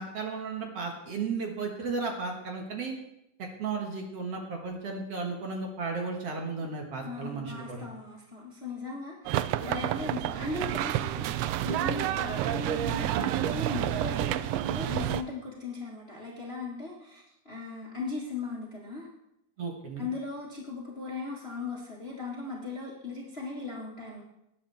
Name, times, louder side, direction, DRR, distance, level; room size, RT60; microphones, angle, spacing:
voice 1, 0.0-3.0 3.6-7.9 19.6-20.1, right 4 dB, 55° right, 1 dB, 2.5 m, -34 dB
voice 2, 7.0-19.1 20.0-24.2, left 3 dB, 25° left, -3 dB, 1.6 m, -38 dB
sound 1, 9.3-15.2, right 13 dB, 90° right, 1.4 m, -29 dB
19.0 x 9.9 x 3.5 m, 0.84 s
omnidirectional pair, 3.5 m